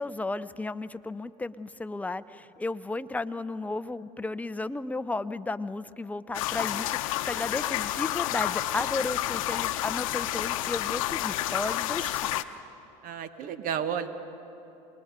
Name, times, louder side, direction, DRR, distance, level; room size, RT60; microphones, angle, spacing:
voice 1, 0.0-12.4, left 3 dB, 10° left, 12 dB, 0.6 m, -34 dB
sound 1, 6.3-12.4, left 14 dB, 85° left, 0.7 m, -30 dB
voice 2, 13.0-14.1, right 8 dB, 55° right, 11 dB, 1.3 m, -32 dB
28.0 x 20.5 x 5.1 m, 2.9 s
supercardioid pair, 90°, 17 cm